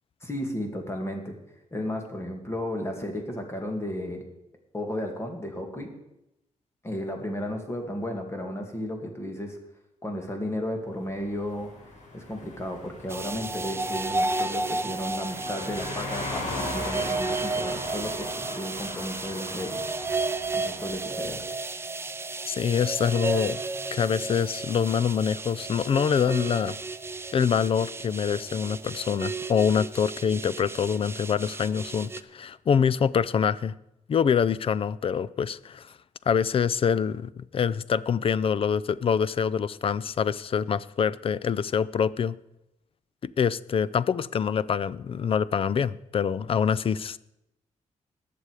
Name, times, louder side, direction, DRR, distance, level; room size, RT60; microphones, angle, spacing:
voice 1, 0.2-1.4 1.7-4.3 4.7-5.9 6.8-9.6 10.0-11.7 12.1-19.8 20.5-21.4, left 1 dB, 20° left, 3 dB, 2.3 m, -33 dB
sound 1, 11.0-21.3, left 2 dB, 80° left, 4.2 m, -39 dB
sound 2, 13.1-32.2, right 3 dB, 20° right, 0.5 m, -33 dB
voice 2, 22.5-23.6 23.9-26.8 27.3-33.7 34.1-35.9 36.3-42.4 43.2-47.2, left 7 dB, 45° left, 19 dB, 0.4 m, -25 dB
19.5 x 6.9 x 4.9 m, 0.86 s
wide cardioid pair, 120°, 13 cm